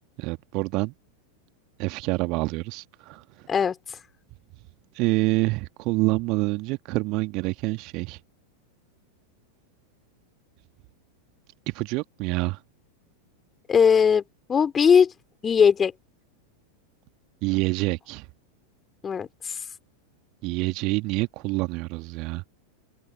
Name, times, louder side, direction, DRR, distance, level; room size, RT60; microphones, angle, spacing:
voice 1, 0.2-0.9 1.8-3.2 4.9-8.2 11.7-12.6 17.4-18.3 20.4-22.4, right 24 dB, 40° right, 1.8 m, -27 dB
voice 2, 13.7-14.2 14.5-15.1 15.4-15.9 19.0-19.6, left 7 dB, 20° left, 3.2 m, -19 dB
figure-of-eight pair, 90°, 0 cm